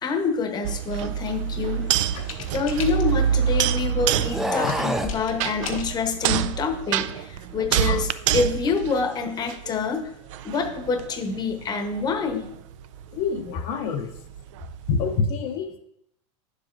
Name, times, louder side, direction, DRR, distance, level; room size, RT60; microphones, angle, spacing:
voice 1, 0.0-1.9 2.5-10.0 10.4-12.5 13.9-14.0, left 5 dB, 25° left, 6 dB, 0.9 m, -27 dB
sound 1, 0.6-9.8 10.3-15.2, right 10 dB, 70° right, 0.4 m, -27 dB
sound 2, 2.1-3.3 5.1-6.0 7.0-7.1 7.4-7.7, left 6 dB, 90° left, 1.2 m, -38 dB
sound 3, 2.1-3.4 4.2-5.2, equal, ahead, 0.4 m, -29 dB
voice 2, 7.7-8.0 13.1-14.1 14.9-15.8, left 5 dB, 50° left, 3 dB, 0.7 m, -27 dB
9.1 x 7.4 x 2.5 m, 0.73 s
supercardioid pair, 130°, 17 cm